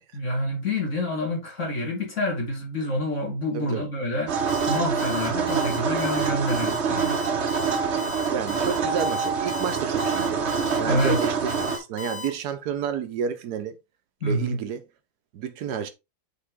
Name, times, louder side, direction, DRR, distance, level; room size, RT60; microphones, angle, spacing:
voice 1, 0.1-7.1 10.8-11.2 14.2-14.6, left 1 dB, 45° left, 2.7 m, -27 dB
sound 1, 4.3-11.8, right 6 dB, 50° right, 1.1 m, -26 dB
Alarm, 4.5-12.3, left 5 dB, 60° left, 2.3 m, -36 dB
voice 2, 8.3-10.4 10.8-13.8 14.2-14.8 15.3-15.9, right 7 dB, 75° right, 1.5 m, -30 dB
7.4 x 3.7 x 3.6 m
omnidirectional pair, 1.7 m